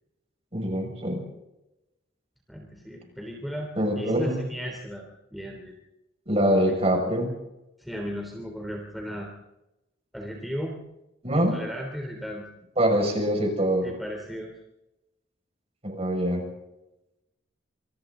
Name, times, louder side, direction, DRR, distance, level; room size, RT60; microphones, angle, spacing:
voice 1, 0.5-1.2 3.8-4.4 6.3-7.3 11.2-11.6 12.8-13.9 15.8-16.4, right 1 dB, 30° right, 2 dB, 6.3 m, -24 dB
voice 2, 2.5-5.7 6.6-6.7 7.8-9.3 10.1-10.8 11.3-12.5 13.8-14.5, equal, ahead, -1 dB, 3.6 m, -35 dB
28.0 x 27.5 x 4.0 m, 0.93 s
head